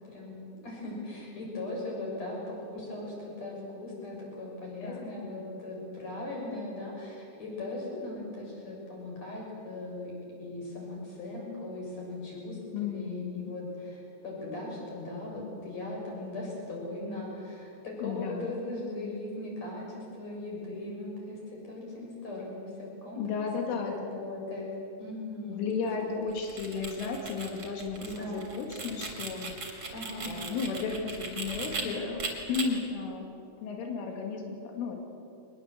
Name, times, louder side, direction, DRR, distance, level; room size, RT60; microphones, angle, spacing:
voice 1, 0.0-10.1 10.4-23.2 24.0-24.7 25.0-26.1 28.0-28.5 29.9-30.3 31.8-32.1, left 2 dB, 35° left, -3 dB, 8.0 m, -39 dB
voice 2, 4.8-5.1 12.7-13.5 18.0-18.5 23.2-24.2 25.4-32.2 32.5-35.0, left 5 dB, 90° left, 2 dB, 4.7 m, -34 dB
sound 1, 26.3-31.8 32.2-32.6, right 4 dB, 30° right, 3.5 m, -38 dB
24.0 x 21.0 x 8.2 m, 2.6 s
omnidirectional pair, 5.5 m